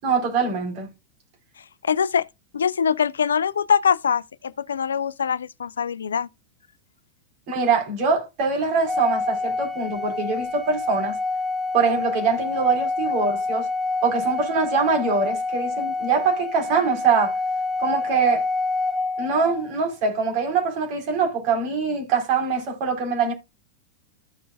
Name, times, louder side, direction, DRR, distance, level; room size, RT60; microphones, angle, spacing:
voice 1, 0.0-0.9 7.5-11.2 11.7-13.7 14.0-17.4 17.8-18.5 19.2-23.3, right 5 dB, 45° right, 4.2 m, -23 dB
voice 2, 1.8-2.3 2.5-6.3, left 7 dB, 70° left, 0.4 m, -23 dB
Organ, 8.9-19.7, left 3 dB, ahead, 0.5 m, -27 dB
14.0 x 6.1 x 2.4 m
figure-of-eight pair, 90°, 0 cm